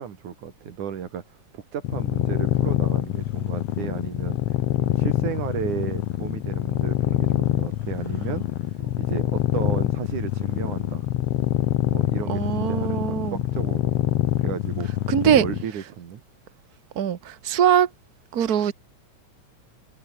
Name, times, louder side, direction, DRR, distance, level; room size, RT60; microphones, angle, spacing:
voice 1, 0.0-11.1 11.9-13.9 14.4-14.9 15.2-16.2, right 8 dB, 75° right, 3.8 m, -34 dB
sound 1, 1.8-15.7, left 14 dB, 65° left, 1.7 m, -25 dB
voice 2, 12.3-13.4 15.1-15.4 16.9-17.9 18.3-18.7, right 9 dB, 40° right, 1.4 m, -21 dB
omnidirectional pair, 3.5 m